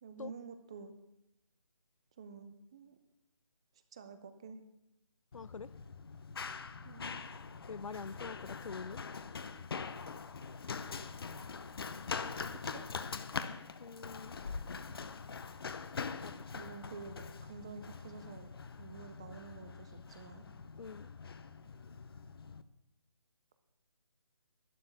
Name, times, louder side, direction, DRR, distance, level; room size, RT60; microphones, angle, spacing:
voice 1, 0.0-0.9 2.2-3.0 3.9-4.6 6.8-7.2 12.6-12.8 16.5-18.5 18.8-20.5, right 5 dB, 10° right, 0.4 m, -49 dB
voice 2, 5.3-5.7 7.7-9.0 13.8-14.4 16.2-16.5 20.8-21.1, left 5 dB, 75° left, 0.5 m, -45 dB
Run, 5.3-22.6, left 5 dB, 45° left, 0.7 m, -43 dB
11.5 x 9.5 x 7.6 m
figure-of-eight pair, 160°, 17 cm